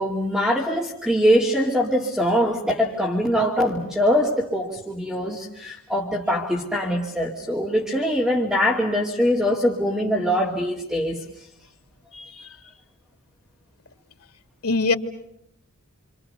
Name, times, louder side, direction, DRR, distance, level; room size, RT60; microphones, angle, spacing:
voice 1, 0.0-11.2, equal, 5° right, -1 dB, 2.6 m, -23 dB
voice 2, 12.1-12.5 14.6-14.9, left 3 dB, 80° left, 9 dB, 2.1 m, -23 dB
29.0 x 26.5 x 6.7 m, 0.77 s
head